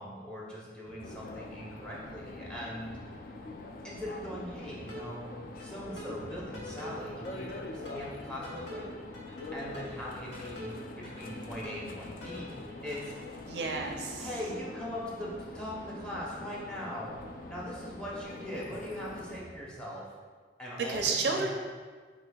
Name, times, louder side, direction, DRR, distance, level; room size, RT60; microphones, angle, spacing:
voice 1, 0.0-3.0 3.8-5.2 5.6-8.9 9.5-12.6 12.8-13.1 14.2-17.1 17.5-20.0 20.6-21.4, equal, 5° left, -5 dB, 0.7 m, -40 dB
sound 1, 0.8-19.6, left 1 dB, 70° left, 1.1 m, -48 dB
sound 2, 1.0-19.4, left 3 dB, 50° left, 0.3 m, -45 dB
voice 2, 13.5-14.3 20.9-21.5, right 4 dB, 65° right, 2 dB, 0.4 m, -31 dB
5.0 x 3.9 x 2.3 m, 1.5 s
head